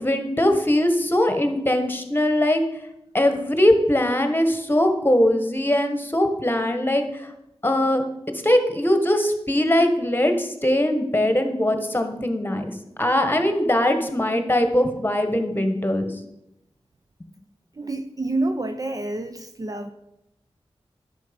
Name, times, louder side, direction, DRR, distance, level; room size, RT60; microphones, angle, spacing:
voice 1, 0.0-2.6 3.1-7.3 7.6-8.0 8.3-12.7 13.0-16.1, left 1 dB, 20° left, 7 dB, 1.6 m, -21 dB
voice 2, 17.8-19.9, right 2 dB, 35° right, 8 dB, 0.7 m, -28 dB
10.5 x 6.8 x 5.3 m, 0.86 s
cardioid pair, 45°, 11 cm